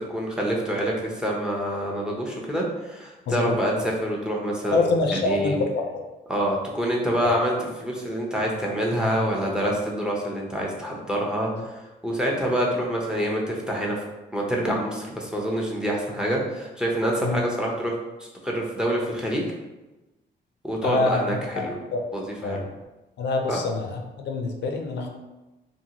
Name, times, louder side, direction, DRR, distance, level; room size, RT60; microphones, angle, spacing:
voice 1, 0.0-5.6 6.3-14.0 14.3-17.9 18.2-19.4 20.6-21.8 22.1-22.6 23.5-23.6, equal, 5° right, -2 dB, 0.6 m, -26 dB
voice 2, 4.7-6.0 7.2-7.3 17.2-17.4 20.8-21.2 21.5-21.6 21.9-22.0 22.4-22.6 23.2-25.1, left 3 dB, 70° left, 3 dB, 0.5 m, -25 dB
2.6 x 2.6 x 2.8 m, 1.1 s
cardioid pair, 100°, 19 cm